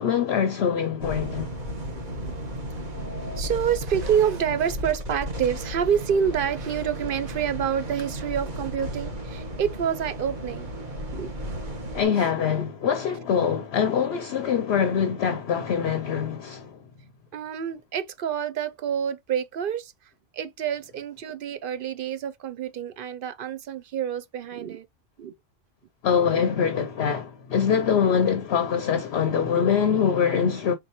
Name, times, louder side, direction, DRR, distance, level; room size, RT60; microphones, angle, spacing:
voice 1, 0.0-1.5 11.9-16.8 26.0-30.7, left 7 dB, 65° left, 0.8 m, -24 dB
sound 1, 1.0-12.0, equal, 40° right, 1.3 m, -34 dB
voice 2, 1.9-2.7 3.4-10.7 11.1-11.3 12.2-12.3 17.3-24.9 25.2-25.3, right 8 dB, 55° right, 0.6 m, -28 dB
4.3 x 3.7 x 2.9 m
omnidirectional pair, 1.3 m